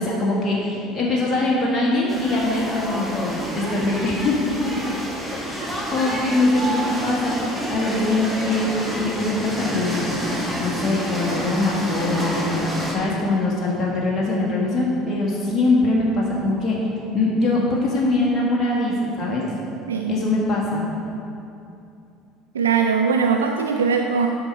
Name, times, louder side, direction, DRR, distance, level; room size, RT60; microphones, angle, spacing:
voice 1, 0.0-4.4 4.6-4.7 5.4-5.6 5.9-10.1 10.6-12.6 12.9-16.8 17.1-19.5 20.1-20.9, left 2 dB, 30° left, -4 dB, 1.5 m, -22 dB
sound 1, 2.1-12.9, equal, ahead, 1.8 m, -29 dB
voice 2, 22.5-24.3, right 6 dB, 80° right, 4 dB, 0.3 m, -20 dB
9.7 x 6.0 x 4.5 m, 2.7 s
figure-of-eight pair, 60°, 0 cm